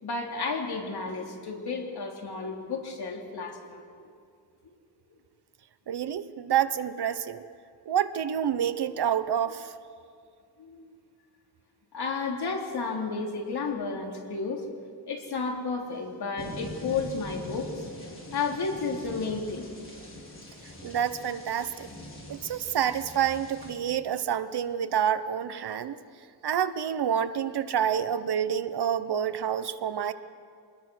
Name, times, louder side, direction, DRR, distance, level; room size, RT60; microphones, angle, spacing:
voice 1, 0.0-4.0 4.6-4.7 6.1-6.2 10.6-10.9 11.9-14.6 15.1-17.9 18.3-19.7, left 4 dB, 60° left, 1 dB, 3.4 m, -32 dB
voice 2, 5.9-7.4 7.9-9.7 20.8-21.9 22.3-26.0 26.4-30.1, right 9 dB, 65° right, 12 dB, 1.0 m, -28 dB
sound 1, 16.4-23.8, left 1 dB, 30° left, 4.7 m, -43 dB
25.5 x 20.0 x 6.3 m, 2.3 s
wide cardioid pair, 130°, 43 cm